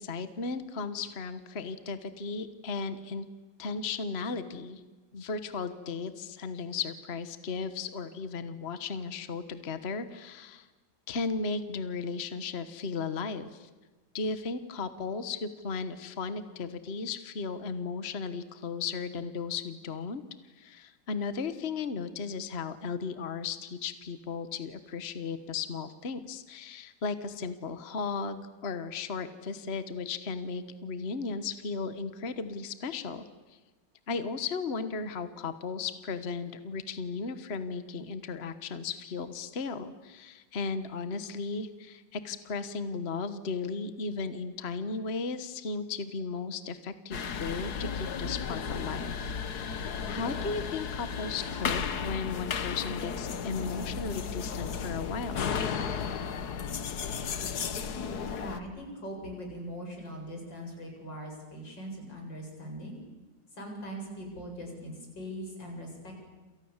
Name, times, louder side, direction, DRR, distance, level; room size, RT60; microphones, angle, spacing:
voice 1, 0.0-3.3 3.6-4.8 5.1-10.7 11.1-13.7 14.1-20.2 20.6-33.2 33.5-33.6 34.1-55.4, left 4 dB, 40° left, 11 dB, 1.4 m, -35 dB
sound 1, 47.1-58.6, left 6 dB, 60° left, 1.8 m, -34 dB
voice 2, 58.4-63.0 63.5-66.1, equal, 85° left, 1 dB, 8.6 m, -41 dB
28.5 x 28.0 x 7.4 m, 1.2 s
omnidirectional pair, 1.9 m